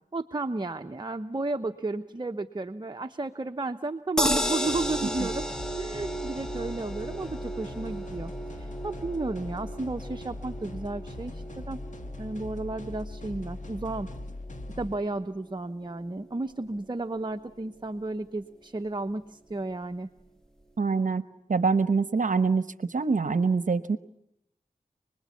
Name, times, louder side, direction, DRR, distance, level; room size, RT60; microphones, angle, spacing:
voice 1, 0.1-5.5 5.8-11.8 12.2-14.1 14.8-20.1, right 2 dB, 30° right, 7 dB, 0.9 m, -33 dB
sound 1, 4.2-16.4 16.8-16.9 17.2-17.3, equal, 5° left, 1.3 m, -35 dB
sound 2, 4.6-14.9, left 2 dB, 60° left, 2.0 m, -40 dB
voice 2, 20.8-21.2 21.5-24.0, right 4 dB, 60° right, 14 dB, 0.9 m, -25 dB
29.0 x 21.0 x 8.4 m, 0.80 s
wide cardioid pair, 60°, 15 cm